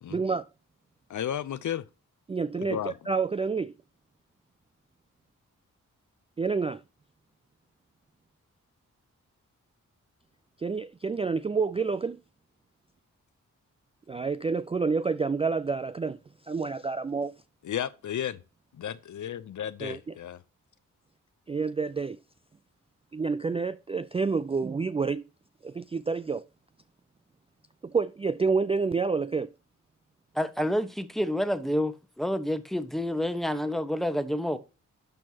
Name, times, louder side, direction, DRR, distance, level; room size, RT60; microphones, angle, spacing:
voice 1, 0.1-0.4 2.3-2.8 3.1-3.7 6.4-6.8 10.6-12.2 14.1-16.2 16.5-17.3 19.8-20.0 21.5-22.2 23.1-25.2 25.6-26.4 27.8-29.5, right 4 dB, 20° right, 0.3 m, -28 dB
voice 2, 1.1-1.8 2.6-3.0 17.6-18.4 18.7-20.4, left 10 dB, 65° left, 0.6 m, -33 dB
voice 3, 30.3-34.6, equal, ahead, 1.0 m, -28 dB
12.0 x 4.5 x 2.8 m
cardioid pair, 55°, 32 cm